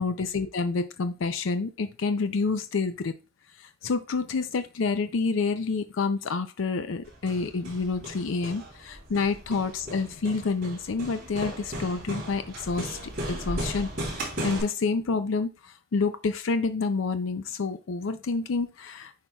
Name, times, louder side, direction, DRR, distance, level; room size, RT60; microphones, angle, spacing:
voice 1, 0.0-3.1 3.8-13.0 13.3-13.9 14.1-19.1, left 4 dB, 85° left, 10 dB, 0.5 m, -28 dB
Hammer, 7.0-14.6, right 1 dB, 50° right, 2.9 m, -36 dB
9.4 x 4.4 x 2.3 m, 0.32 s
head